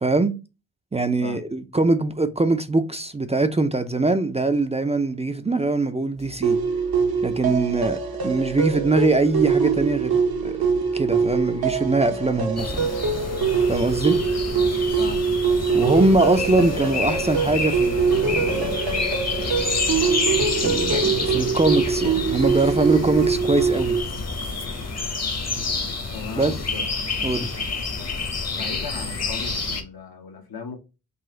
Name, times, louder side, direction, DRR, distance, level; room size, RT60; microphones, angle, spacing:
voice 1, 0.0-0.4 0.9-6.6 7.2-10.5 10.9-12.9 13.7-14.2 15.7-18.8 20.6-24.0 26.4-26.5 27.2-27.5, right 2 dB, 20° right, 0.4 m, -22 dB
sound 1, 6.2-24.6, equal, 60° left, 1.4 m, -42 dB
sound 2, 6.4-24.0, right 5 dB, 80° right, 0.8 m, -23 dB
sound 3, 12.6-29.8, left 4 dB, 45° left, 0.9 m, -29 dB
voice 2, 15.0-15.3 26.1-26.9 28.5-30.8, left 5 dB, 80° left, 1.0 m, -37 dB
4.0 x 2.4 x 3.8 m
cardioid pair, 55°, 36 cm